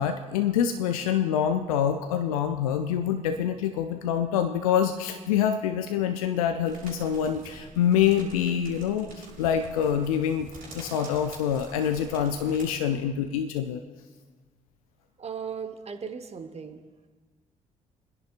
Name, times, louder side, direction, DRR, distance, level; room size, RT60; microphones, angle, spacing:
voice 1, 0.0-10.5 10.7-13.8, left 9 dB, 80° left, 7 dB, 0.5 m, -26 dB
sound 1, 6.6-12.7, right 3 dB, 60° right, 4.0 m, -47 dB
voice 2, 15.2-16.8, right 6 dB, 35° right, 8 dB, 1.2 m, -37 dB
29.0 x 10.5 x 2.5 m, 1.4 s
hypercardioid pair, 45°, 18 cm